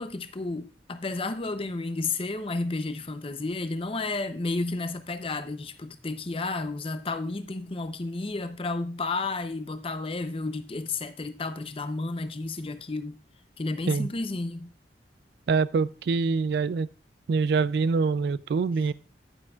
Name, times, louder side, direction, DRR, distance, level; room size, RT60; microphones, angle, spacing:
voice 1, 0.0-13.2 13.6-14.7, left 3 dB, 30° left, 0.6 m, -32 dB
voice 2, 15.5-16.9 17.3-18.9, right 4 dB, 60° right, 0.3 m, -25 dB
10.0 x 9.2 x 2.4 m
head